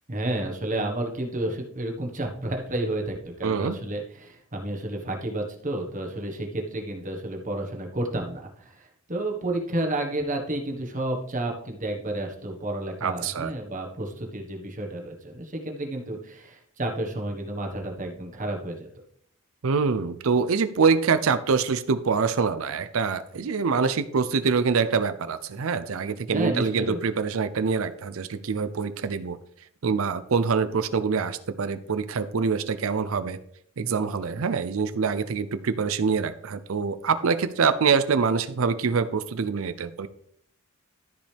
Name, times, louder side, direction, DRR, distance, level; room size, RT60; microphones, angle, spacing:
voice 1, 0.1-18.9 26.3-27.0, right 1 dB, 35° right, 1 dB, 1.4 m, -31 dB
voice 2, 3.4-3.7 13.0-13.5 19.6-29.4 29.8-33.4 33.8-40.1, right 5 dB, 70° right, 12 dB, 0.5 m, -25 dB
13.5 x 5.3 x 3.4 m, 0.68 s
head